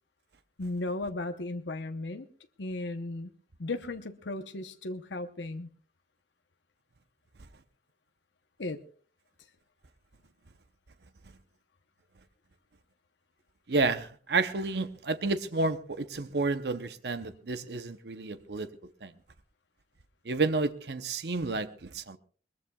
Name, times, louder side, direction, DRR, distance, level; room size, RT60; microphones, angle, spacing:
voice 1, 0.6-2.3 2.6-3.3 3.6-5.7 8.6-8.8, left 2 dB, 85° left, 0.9 m, -35 dB
voice 2, 13.7-18.7 19.0-19.1 20.2-22.2, right 3 dB, 65° right, 0.8 m, -30 dB
21.5 x 21.0 x 2.3 m
head